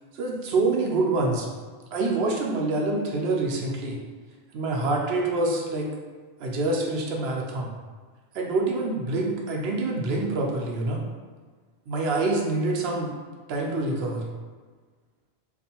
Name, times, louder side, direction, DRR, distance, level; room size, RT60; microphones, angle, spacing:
voice 1, 0.1-1.5 1.9-4.0 4.5-5.9 6.4-7.7 8.3-11.0 11.9-13.1 13.5-14.2, right 2 dB, 75° right, -1 dB, 0.8 m, -26 dB
2.6 x 2.4 x 2.7 m, 1.5 s
omnidirectional pair, 1.1 m